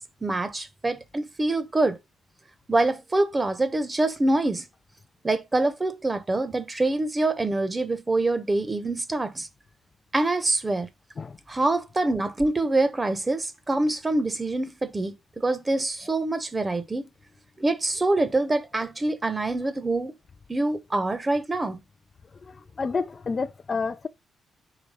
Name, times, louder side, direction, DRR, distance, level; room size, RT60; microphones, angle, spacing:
voice 1, 0.2-2.0 2.7-4.7 5.2-9.5 10.1-10.9 11.5-17.1 17.6-20.1 20.5-21.8, right 2 dB, 20° right, 0.9 m, -25 dB
voice 2, 22.4-24.1, left 4 dB, 35° left, 0.5 m, -30 dB
5.0 x 4.4 x 5.4 m
cardioid pair, 120°, 0 cm